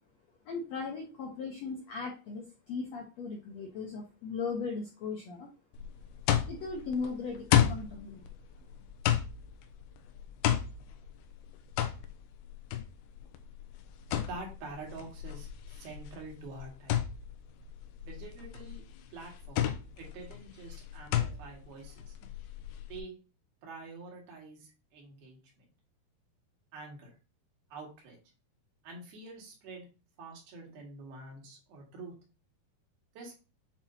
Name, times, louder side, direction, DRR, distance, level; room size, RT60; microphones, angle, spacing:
voice 1, 0.5-5.5 6.5-8.2, left 4 dB, 70° left, -1 dB, 1.6 m, -37 dB
sound 1, 5.7-23.0, left 11 dB, 85° left, 2.6 m, -33 dB
voice 2, 14.3-17.1 18.0-18.8 19.1-22.2 22.9-23.2 23.6-25.7 26.7-27.2 27.7-28.2 28.8-29.9 30.2-32.1 33.2-33.3, right 3 dB, 70° right, -1 dB, 3.8 m, -46 dB
8.8 x 4.3 x 2.8 m, 0.32 s
omnidirectional pair, 4.5 m